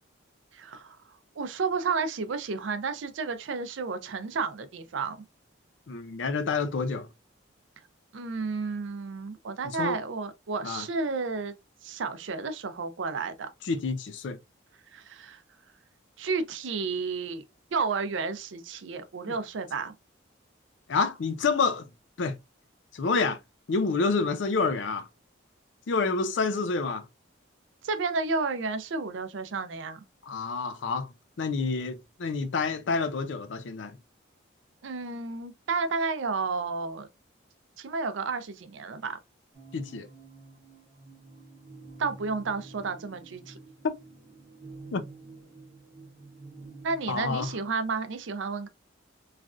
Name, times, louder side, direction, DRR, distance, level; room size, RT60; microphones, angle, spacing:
voice 1, 0.5-1.0 1.4-5.2 8.1-11.5 11.8-13.5 14.9-15.4 16.2-17.4 17.7-19.9 27.8-30.0 34.8-37.1 37.8-39.2 42.0-43.6 46.8-48.7, right 4 dB, 75° right, 0.5 m, -31 dB
voice 2, 5.9-7.1 9.6-10.0 10.6-10.9 13.6-14.4 19.3-19.4 20.9-21.9 22.2-22.4 22.9-23.4 23.7-25.1 25.9-27.1 30.3-31.1 31.4-34.0 39.7-40.1 43.8-44.0 44.9-45.0 47.1-47.5, left 4 dB, 70° left, 0.4 m, -28 dB
sound 1, 39.5-47.7, right 3 dB, 35° right, 1.1 m, -49 dB
3.2 x 2.4 x 2.4 m
head